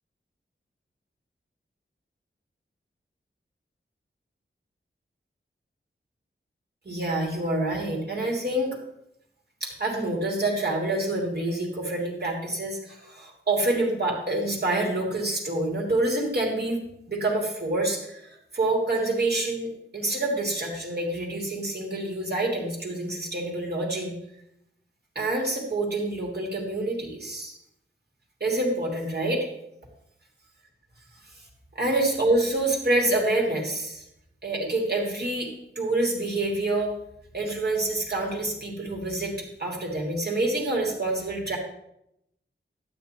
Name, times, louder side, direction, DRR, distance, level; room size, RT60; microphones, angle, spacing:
voice 1, 6.8-8.8 9.6-16.8 17.1-24.1 25.1-27.5 28.4-29.5 31.7-34.0 34.4-36.9 37.3-39.3 39.6-41.6, right 2 dB, 55° right, -1 dB, 3.1 m, -27 dB
12.5 x 8.8 x 4.5 m, 0.79 s
wide cardioid pair, 95°, 20 cm